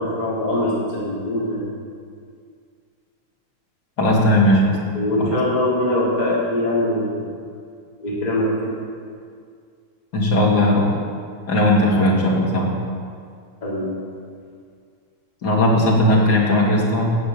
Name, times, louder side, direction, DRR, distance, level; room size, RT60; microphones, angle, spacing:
voice 1, 0.0-1.7 4.9-7.3 8.0-8.7 12.2-12.3 13.6-14.0, left 1 dB, 15° left, -7 dB, 3.3 m, -22 dB
voice 2, 4.0-4.8 5.2-5.3 10.1-10.9 11.5-12.7 15.4-17.1, left 1 dB, 35° left, -3 dB, 3.0 m, -17 dB
14.0 x 9.1 x 8.7 m, 2.2 s
omnidirectional pair, 3.5 m